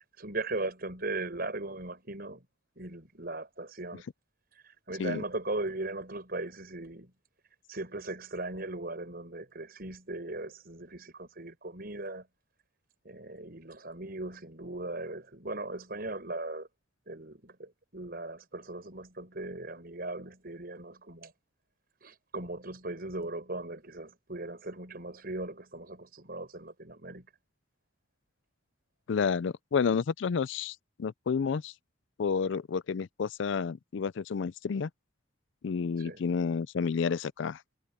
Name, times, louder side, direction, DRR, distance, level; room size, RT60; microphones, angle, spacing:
voice 1, 0.0-2.4 2.8-4.0 4.5-7.1 7.7-12.3 13.0-16.7 17.1-21.3 22.0-27.3 35.9-36.2, right 2 dB, 50° right, 6.1 m, -38 dB
voice 2, 29.1-31.7 32.2-34.9 35.6-37.6, left 6 dB, 60° left, 0.4 m, -30 dB
head